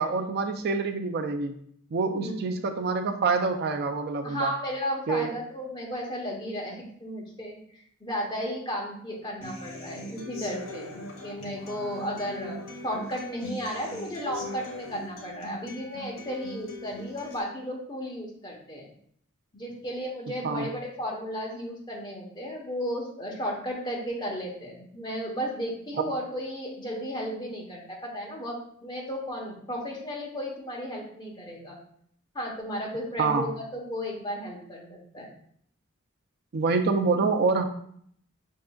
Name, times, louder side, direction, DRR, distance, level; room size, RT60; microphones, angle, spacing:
voice 1, 0.0-1.6 1.9-4.5 5.1-5.3 20.4-20.7 26.0-26.1 33.2-33.5 36.5-37.6, right 4 dB, 50° right, 6 dB, 0.4 m, -26 dB
voice 2, 4.2-11.0 11.2-12.6 12.8-18.9 19.5-31.8 32.3-35.3 37.1-37.2, equal, 20° left, -2 dB, 1.0 m, -34 dB
Human voice / Acoustic guitar, 9.4-17.4, left 1 dB, 80° left, 0.9 m, -40 dB
5.2 x 3.7 x 2.3 m, 0.65 s
head